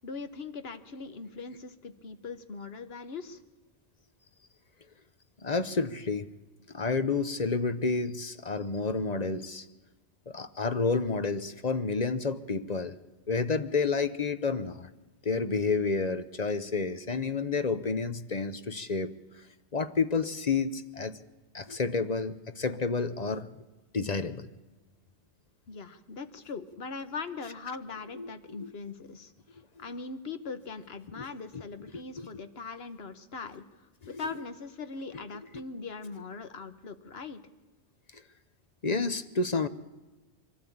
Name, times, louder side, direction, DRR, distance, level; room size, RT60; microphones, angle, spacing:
voice 1, 0.0-3.4 25.7-33.6 34.1-37.4, left 4 dB, 60° left, 11 dB, 1.4 m, -41 dB
voice 2, 5.4-6.3 6.7-9.7 10.3-13.0 13.3-14.9 15.2-19.1 19.7-21.2 21.5-23.5 23.9-24.5 28.2-28.7 31.2-31.3 31.9-32.3 38.1-38.2 38.8-39.7, left 4 dB, 40° left, 11 dB, 0.9 m, -30 dB
23.5 x 13.0 x 8.6 m, 1.2 s
omnidirectional pair, 1.2 m